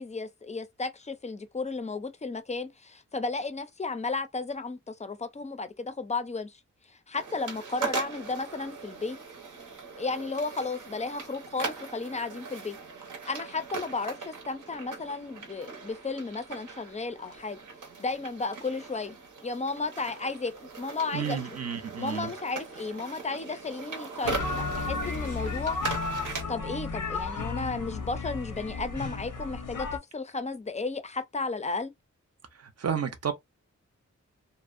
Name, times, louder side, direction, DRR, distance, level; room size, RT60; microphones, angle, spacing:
voice 1, 0.0-6.6 6.9-9.2 10.0-12.8 13.3-17.6 18.0-21.4 22.0-25.8 26.5-29.9 30.1-31.9, left 3 dB, 25° left, 0.4 m, -34 dB
sound 1, 7.2-26.4, right 4 dB, 85° right, 0.8 m, -40 dB
voice 2, 21.1-22.3 32.6-33.3, right 7 dB, 55° right, 0.5 m, -31 dB
sound 2, 24.2-30.0, left 4 dB, 90° left, 0.6 m, -33 dB
2.5 x 2.0 x 2.4 m
wide cardioid pair, 105°, 30 cm